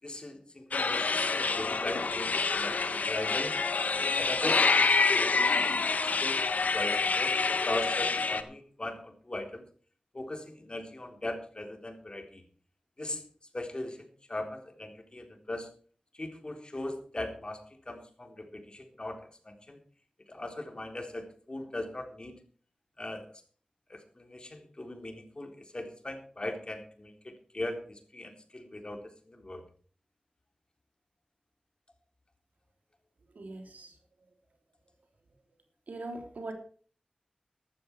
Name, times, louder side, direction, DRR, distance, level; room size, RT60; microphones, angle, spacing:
voice 1, 0.0-3.6 4.2-5.5 5.9-7.4 7.6-9.6 10.1-12.4 13.0-13.2 13.5-15.7 16.1-19.8 20.3-22.4 23.0-23.3 23.9-29.6, left 1 dB, 40° left, 5 dB, 3.7 m, -39 dB
sound 1, 0.7-8.4, left 4 dB, 85° left, 1.3 m, -27 dB
voice 2, 33.4-34.0 35.9-36.5, right 2 dB, 90° right, 4 dB, 3.5 m, -41 dB
14.5 x 12.5 x 4.6 m, 0.43 s
wide cardioid pair, 55°, 3 cm